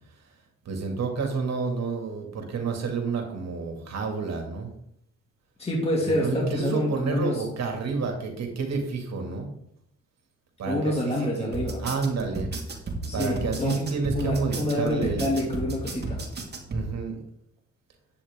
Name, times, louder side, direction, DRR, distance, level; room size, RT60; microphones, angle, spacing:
voice 1, 0.1-0.4 0.6-4.7 6.0-9.5 10.6-12.5 13.1-15.6 16.7-17.2, right 4 dB, 60° right, 3 dB, 2.4 m, -30 dB
voice 2, 5.6-7.4 10.7-11.8 13.1-13.8 14.1-16.2, left 1 dB, 20° left, -3 dB, 2.5 m, -27 dB
sound 1, 11.5-16.8, right 2 dB, 35° right, 2.2 m, -33 dB
10.5 x 8.3 x 3.7 m, 0.73 s
cardioid pair, 90°, 30 cm